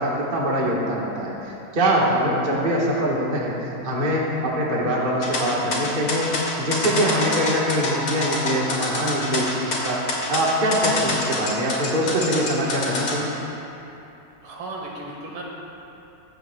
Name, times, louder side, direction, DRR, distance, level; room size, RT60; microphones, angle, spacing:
voice 1, 0.0-6.3 6.6-13.3, equal, 30° right, -4 dB, 1.2 m, -23 dB
sound 1, 5.2-13.2, left 2 dB, 85° left, 2.8 m, -26 dB
voice 2, 14.4-15.4, right 2 dB, 85° right, -2 dB, 2.4 m, -35 dB
22.5 x 7.7 x 2.2 m, 2.9 s
omnidirectional pair, 2.2 m